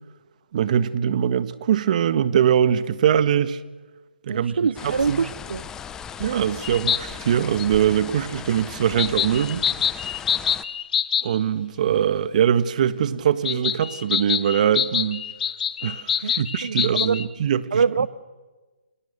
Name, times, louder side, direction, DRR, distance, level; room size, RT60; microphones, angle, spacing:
voice 1, 0.5-3.6 4.2-5.3 6.2-9.6 11.2-15.2 15.8-17.8, right 9 dB, 45° right, 1.7 m, -22 dB
voice 2, 4.3-5.6 16.2-16.3 16.6-17.2 17.7-18.1, right 5 dB, 75° right, 0.8 m, -24 dB
sound 1, 4.8-10.6, left 8 dB, 10° left, 0.9 m, -37 dB
sound 2, 6.6-7.0 7.6-7.7 9.0-11.3 13.4-17.3, left 9 dB, 45° left, 1.5 m, -25 dB
29.5 x 28.0 x 6.9 m
hypercardioid pair, 150°, 6 cm